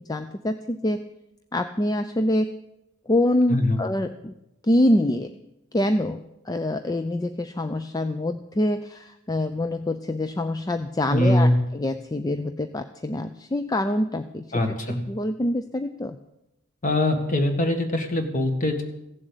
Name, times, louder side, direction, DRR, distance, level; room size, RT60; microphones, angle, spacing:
voice 1, 0.1-1.0 1.5-2.5 3.1-4.3 4.6-5.3 5.7-16.2, left 1 dB, 15° left, 9 dB, 0.4 m, -25 dB
voice 2, 11.1-11.6 14.5-15.0 16.8-18.8, left 1 dB, 35° left, 5 dB, 1.7 m, -22 dB
15.5 x 7.7 x 8.1 m, 0.89 s
head